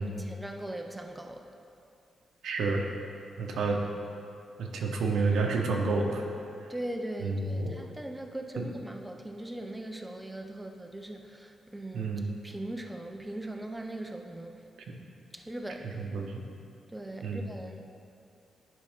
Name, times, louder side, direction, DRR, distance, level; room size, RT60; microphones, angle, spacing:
voice 1, 0.2-1.5 6.7-12.1 12.4-14.5 15.5-15.9 16.9-17.8, right 1 dB, 5° right, 3 dB, 0.3 m, -39 dB
voice 2, 2.4-2.9 3.4-3.8 4.6-6.2 7.2-7.8 8.5-8.7 11.9-12.3 15.8-16.4 17.2-17.5, right 3 dB, 80° right, 1 dB, 0.8 m, -30 dB
10.5 x 5.3 x 3.5 m, 2.5 s
wide cardioid pair, 175°, 0 cm